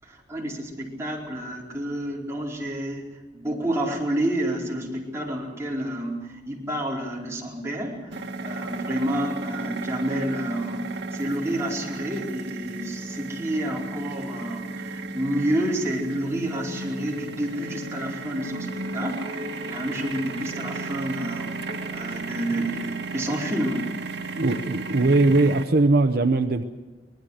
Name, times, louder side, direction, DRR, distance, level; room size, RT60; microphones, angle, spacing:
voice 1, 0.0-23.9, right 1 dB, 15° right, -3 dB, 4.6 m, -29 dB
sound 1, 8.1-25.6, right 2 dB, 75° right, 2.1 m, -34 dB
voice 2, 24.4-26.6, right 2 dB, 60° right, 8 dB, 0.8 m, -20 dB
25.0 x 19.5 x 6.5 m, 1.3 s
head